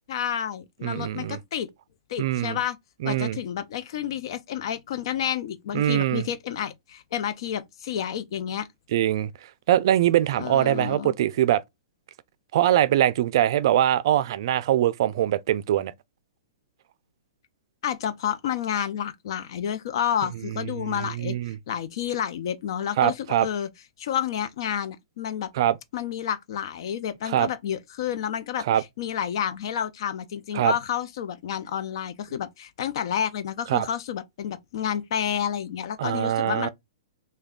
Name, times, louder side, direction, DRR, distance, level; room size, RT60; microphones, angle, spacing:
voice 1, 0.1-1.7 2.1-2.8 3.0-8.7 10.4-11.1 17.8-23.7 24.0-25.5 25.9-36.7, left 9 dB, 55° left, 0.5 m, -30 dB
voice 2, 0.8-1.4 2.2-2.6 3.0-3.4 5.7-6.3 8.9-9.3 9.7-11.6 12.5-15.9 20.5-21.6 23.0-23.5 25.6-25.7 27.3-27.5 28.7-28.8 30.5-30.7 33.7-33.9 36.0-36.7, right 12 dB, 55° right, 0.3 m, -23 dB
3.2 x 2.2 x 3.6 m
hypercardioid pair, 150°, 3 cm